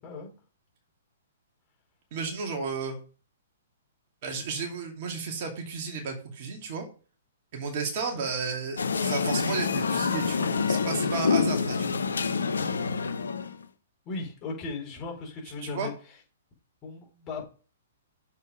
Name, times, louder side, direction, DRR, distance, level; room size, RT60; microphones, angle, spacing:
voice 1, 2.1-3.0 4.2-6.9 7.5-12.0 15.6-15.9, right 5 dB, 45° right, 1 dB, 2.5 m, -33 dB
sound 1, 8.8-13.6, left 5 dB, 75° left, 0.8 m, -27 dB
voice 2, 14.0-15.9 16.8-17.4, left 4 dB, 25° left, -2 dB, 4.4 m, -37 dB
7.3 x 5.6 x 5.2 m, 0.38 s
figure-of-eight pair, 120°, 0 cm